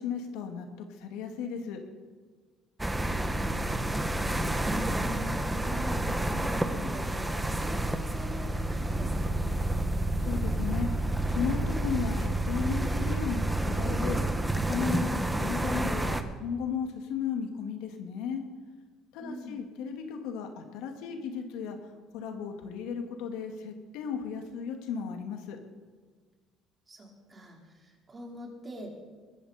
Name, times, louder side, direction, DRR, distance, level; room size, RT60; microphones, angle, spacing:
voice 1, 0.0-1.8 10.2-14.2 14.5-18.4 19.1-21.8 22.1-25.6, left 6 dB, 90° left, 4 dB, 2.3 m, -35 dB
sound 1, 2.8-16.2, right 1 dB, 10° right, 1.1 m, -29 dB
voice 2, 2.8-9.6 19.2-19.6 26.9-28.9, equal, 25° right, -1 dB, 4.3 m, -44 dB
21.5 x 15.0 x 4.4 m, 1.4 s
cardioid pair, 130°, 0 cm